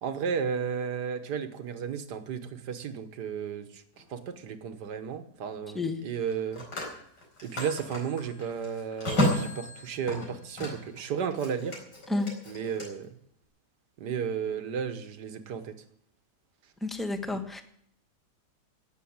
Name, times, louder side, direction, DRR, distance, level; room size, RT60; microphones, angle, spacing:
voice 1, 0.0-3.8 4.1-6.7 7.4-11.8 12.5-13.1 14.0-15.7, right 7 dB, 70° right, 10 dB, 1.8 m, -33 dB
Telephone, 4.0-4.2 6.1-11.0 11.3-12.9, left 1 dB, 85° left, 5.1 m, -33 dB
voice 2, 16.8-17.6, left 2 dB, ahead, 7 dB, 1.1 m, -30 dB
17.5 x 7.1 x 8.7 m, 0.68 s
omnidirectional pair, 1.9 m